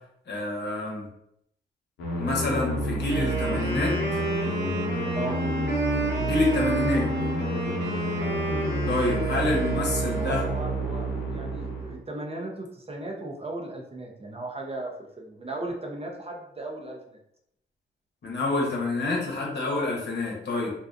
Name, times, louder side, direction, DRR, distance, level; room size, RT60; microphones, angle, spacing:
voice 1, 0.3-1.1 2.2-4.2 6.2-7.1 8.9-10.4 18.2-20.7, left 2 dB, 60° left, -2 dB, 0.9 m, -27 dB
sound 1, 2.0-12.0, right 1 dB, 85° left, 0.7 m, -29 dB
Wind instrument woodwind instrument, 3.0-10.8, right 3 dB, 60° right, 1.0 m, -31 dB
voice 2, 10.2-17.2, right 2 dB, 30° right, 0 dB, 0.6 m, -37 dB
2.5 x 2.2 x 2.5 m, 0.74 s
cardioid pair, 60°, 20 cm